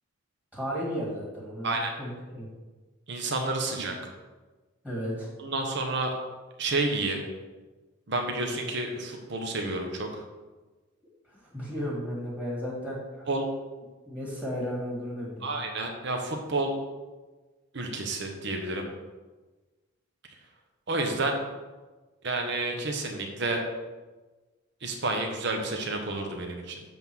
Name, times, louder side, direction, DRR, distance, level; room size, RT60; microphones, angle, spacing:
voice 1, 0.5-2.5 4.8-5.3 11.3-13.2 14.1-15.6, equal, 5° right, -5 dB, 2.0 m, -34 dB
voice 2, 3.1-3.9 5.4-6.1 6.6-7.2 8.1-10.2 13.3-13.5 15.4-16.7 17.7-18.9 20.9-21.4 22.2-23.6 24.8-26.8, right 2 dB, 55° right, 3 dB, 1.0 m, -30 dB
7.8 x 3.6 x 6.1 m, 1.2 s
head